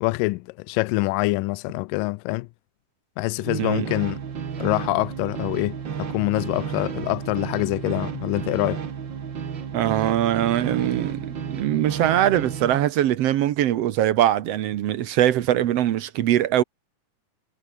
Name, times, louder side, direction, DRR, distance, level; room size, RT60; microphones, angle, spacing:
voice 1, 0.0-2.5 3.2-4.2 4.6-8.8, left 23 dB, 85° left, 2.2 m, -25 dB
sound 1, 3.4-12.9, right 7 dB, 40° right, 1.9 m, -32 dB
voice 2, 3.5-3.9 9.7-16.6, right 12 dB, 65° right, 1.6 m, -22 dB
omnidirectional pair, 4.0 m